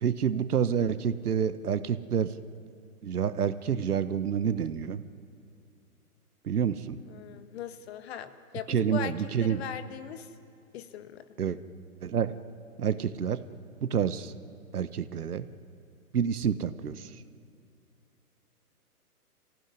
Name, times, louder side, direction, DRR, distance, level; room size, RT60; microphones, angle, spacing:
voice 1, 0.0-2.3 3.0-5.0 6.5-7.0 8.7-9.6 11.4-11.6 12.0-12.3 12.8-13.4 13.8-14.3 14.7-15.4 16.1-17.0, right 7 dB, 75° right, 13 dB, 1.3 m, -28 dB
voice 2, 7.1-10.3 10.7-11.2, left 9 dB, 45° left, 11 dB, 1.4 m, -40 dB
26.5 x 16.0 x 9.6 m, 2.5 s
hypercardioid pair, 135°, 46 cm